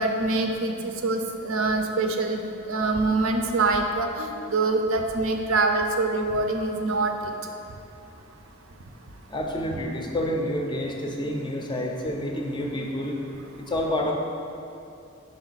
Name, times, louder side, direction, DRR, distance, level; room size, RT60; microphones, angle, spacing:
voice 1, 0.0-2.4 2.7-7.1, right 3 dB, 70° right, 4 dB, 0.5 m, -24 dB
voice 2, 9.3-13.2 13.6-14.1, left 1 dB, 20° left, 1 dB, 0.4 m, -28 dB
5.2 x 4.8 x 4.0 m, 2.8 s
head